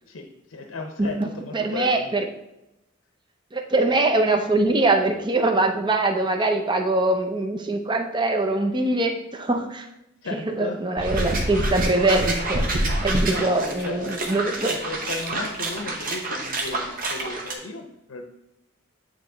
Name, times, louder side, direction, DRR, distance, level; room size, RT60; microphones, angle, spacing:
voice 1, 0.1-2.1 10.2-10.8 13.3-14.2 14.6-18.2, left 3 dB, 90° left, 4 dB, 0.6 m, -35 dB
voice 2, 1.0-2.3 3.5-9.9 10.3-14.7, right 2 dB, 25° right, 4 dB, 0.6 m, -23 dB
sound 1, 11.0-17.5, right 1 dB, 45° right, 0.9 m, -27 dB
8.9 x 3.0 x 3.8 m, 0.88 s
head